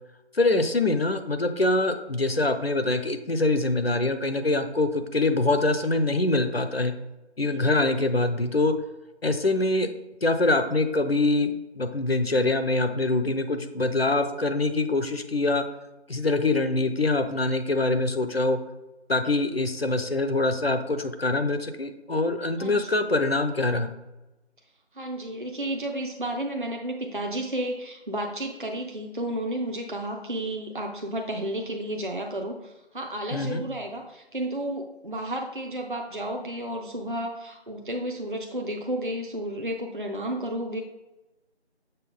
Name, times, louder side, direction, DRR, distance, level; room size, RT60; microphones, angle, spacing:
voice 1, 0.3-6.9 7.4-8.7 9.2-9.9 10.2-15.6 16.1-18.6 19.1-23.9 33.3-33.6, left 2 dB, 60° left, 8 dB, 0.7 m, -24 dB
voice 2, 22.6-23.0 24.9-40.8, right 1 dB, 50° right, 2 dB, 0.6 m, -32 dB
6.7 x 4.1 x 3.8 m, 1.0 s
figure-of-eight pair, 175°, 34 cm